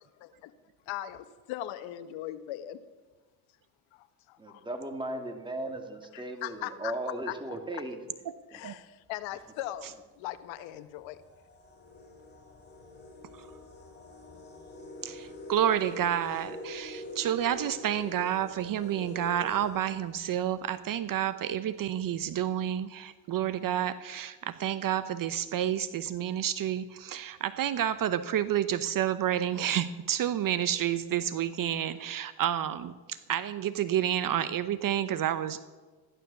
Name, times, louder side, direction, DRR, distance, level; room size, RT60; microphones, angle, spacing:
voice 1, 0.9-2.8 3.9-4.7 6.4-6.9 7.3-7.4 8.5-11.2, left 13 dB, 75° left, 11 dB, 1.3 m, -39 dB
voice 2, 4.4-8.0 8.5-8.6, right 1 dB, 10° right, 4 dB, 2.4 m, -37 dB
sound 1, 9.2-9.5 10.3-10.4 10.9-20.6, left 1 dB, 20° left, 3.5 m, -45 dB
voice 3, 15.0-35.6, right 10 dB, 45° right, 13 dB, 0.9 m, -30 dB
15.0 x 11.5 x 7.0 m, 1.3 s
supercardioid pair, 95°, 46 cm